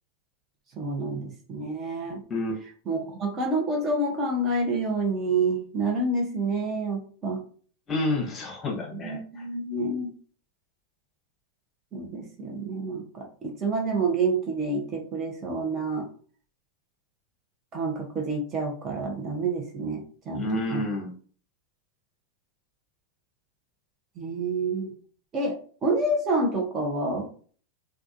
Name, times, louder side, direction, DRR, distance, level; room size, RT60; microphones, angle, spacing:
voice 1, 0.8-2.2 2.9-7.4 8.9-10.1 11.9-16.1 17.7-20.4 20.7-20.8 24.2-24.9 25.3-27.3, right 2 dB, 30° right, 1 dB, 0.8 m, -28 dB
voice 2, 7.9-9.4 20.3-21.1, left 2 dB, 25° left, 0 dB, 1.0 m, -29 dB
3.5 x 2.3 x 2.6 m, 0.43 s
figure-of-eight pair, 90°, 0 cm